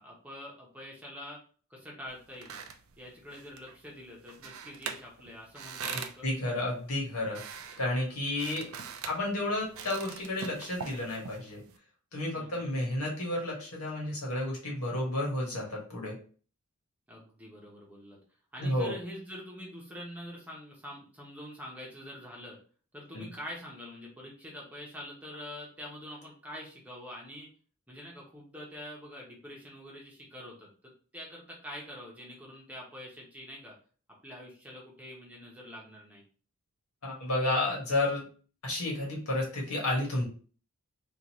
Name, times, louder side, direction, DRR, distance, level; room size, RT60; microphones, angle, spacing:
voice 1, 0.0-1.4 1.7-2.6 3.0-6.2 12.3-12.8 17.1-18.2 18.5-22.6 22.9-27.5 27.9-30.7 31.1-33.7 34.2-36.2, equal, 5° right, -3 dB, 0.9 m, -45 dB
sound 1, 2.1-11.8, right 6 dB, 70° right, 0.4 m, -44 dB
voice 2, 6.2-7.4 7.8-8.7 9.1-11.6 12.1-16.2 18.6-18.9 23.1-23.3 37.0-38.3 38.6-40.3, left 1 dB, 85° left, -2 dB, 1.6 m, -31 dB
3.9 x 2.5 x 3.0 m, 0.41 s
head